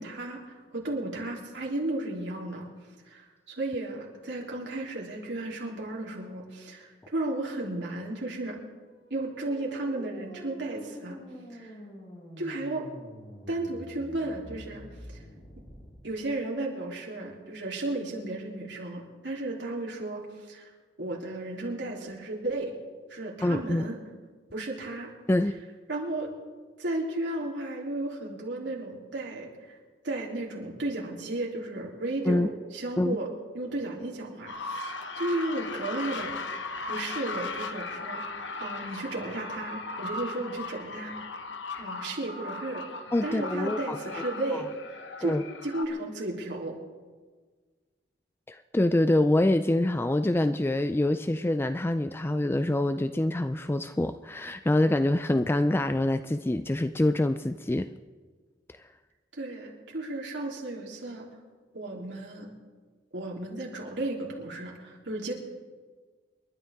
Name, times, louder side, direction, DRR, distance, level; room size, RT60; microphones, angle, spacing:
voice 1, 0.0-8.6 9.1-11.2 11.5-11.8 12.4-12.9 13.5-15.3 16.0-20.7 21.0-22.7 23.1-24.0 24.5-25.1 25.9-26.3 26.8-29.8 30.0-33.3 33.5-36.4 36.9-41.3 41.8-42.9 43.2-45.4 45.6-46.8 59.3-61.4 61.7-62.5 63.1-65.3, right 2 dB, 75° right, -2 dB, 3.5 m, -34 dB
sound 1, 8.9-16.0, equal, 45° left, 4.5 m, -47 dB
voice 2, 23.4-23.9 25.3-25.5 32.3-32.5 33.0-33.2 43.1-44.0 45.2-45.4 48.5-57.9, left 1 dB, 15° left, 10 dB, 0.4 m, -25 dB
sound 2, 34.5-45.9, left 3 dB, 90° left, 1.2 m, -37 dB
28.5 x 12.5 x 3.7 m, 1.4 s
head